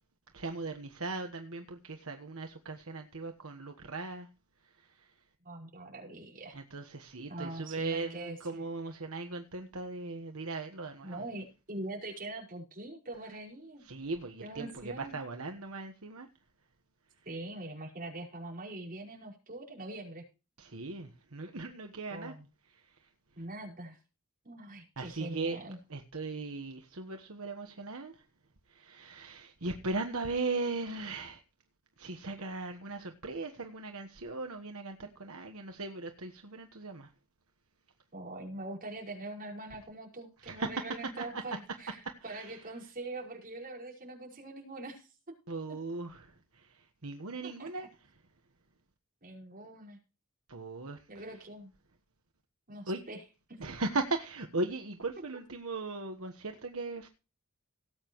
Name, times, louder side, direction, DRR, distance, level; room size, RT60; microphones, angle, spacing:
voice 1, 0.3-4.3 4.6-5.1 6.5-11.2 13.8-16.3 20.6-22.3 22.7-23.1 25.0-25.6 25.9-28.2 28.7-31.4 32.0-37.1 40.4-41.4 42.0-42.7 45.5-48.1 50.5-51.1 52.9-53.0 53.6-57.1, right 3 dB, 65° right, 1.3 m, -38 dB
voice 2, 5.4-6.6 7.3-8.6 11.0-13.9 14.4-15.2 17.3-20.2 22.1-22.4 23.4-24.0 24.4-25.8 38.1-42.0 42.2-45.1 47.4-47.9 49.2-50.0 51.1-51.7 52.7-53.2 53.5-53.6, right 2 dB, 40° right, 5.4 m, -43 dB
18.5 x 9.2 x 3.1 m
head